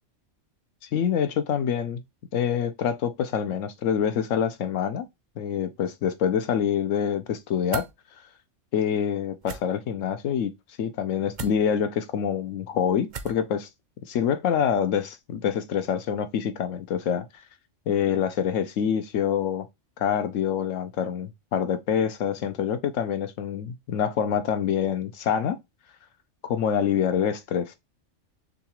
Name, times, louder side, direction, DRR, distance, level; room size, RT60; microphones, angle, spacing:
voice 1, 0.8-2.0 2.3-5.1 5.4-7.8 8.7-10.5 10.8-13.7 14.1-17.3 17.9-19.7 20.0-25.6 26.4-27.7, left 8 dB, 85° left, 1.1 m, -26 dB
sound 1, 7.7-7.9 9.4-9.6 11.3-11.6 13.1-13.4, right 6 dB, 50° right, 0.6 m, -35 dB
6.6 x 2.4 x 3.0 m
omnidirectional pair, 1.3 m